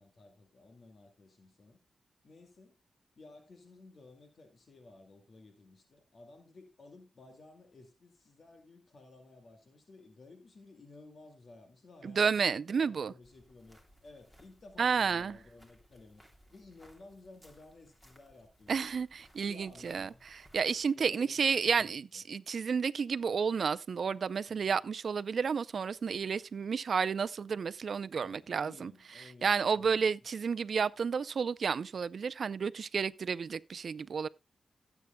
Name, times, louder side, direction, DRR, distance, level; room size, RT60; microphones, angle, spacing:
voice 1, 0.0-1.8 2.2-2.8 3.2-16.2 16.5-18.9 19.4-20.3 20.9-22.2 24.6-24.7 28.1-30.1, left 3 dB, 65° left, 2.1 m, -55 dB
voice 2, 12.0-13.1 14.8-15.4 18.7-20.1 20.5-34.3, right 6 dB, 70° right, 0.5 m, -31 dB
sound 1, 13.2-20.8, equal, 15° left, 3.2 m, -63 dB
17.0 x 8.2 x 2.2 m
cardioid pair, 65°, 0 cm